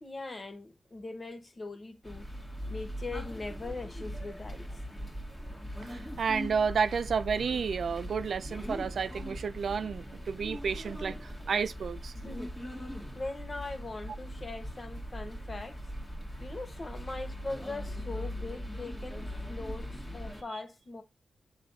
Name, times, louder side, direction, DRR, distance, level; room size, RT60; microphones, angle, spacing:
voice 1, 0.0-2.3 2.7-4.8 12.1-12.5 13.1-15.8 16.4-21.0, left 2 dB, 35° left, 1.4 m, -41 dB
sound 1, 2.0-20.4, equal, 15° left, 1.8 m, -40 dB
voice 2, 5.9-12.1, right 6 dB, 80° right, 0.4 m, -31 dB
7.7 x 3.2 x 4.0 m
wide cardioid pair, 100°, 0 cm